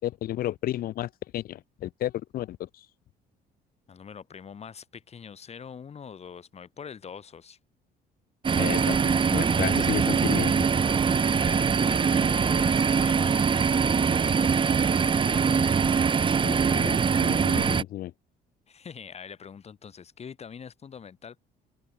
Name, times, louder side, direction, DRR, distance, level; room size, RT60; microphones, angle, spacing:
voice 1, 0.0-2.9 8.6-10.7 16.4-18.1, left 13 dB, 60° left, 0.7 m, -33 dB
voice 2, 3.9-7.6 11.1-15.8 18.7-21.4, left 7 dB, 40° left, 6.7 m, -44 dB
sound 1, 8.4-17.8, right 6 dB, 30° right, 1.2 m, -23 dB
cardioid pair, 110°, 17 cm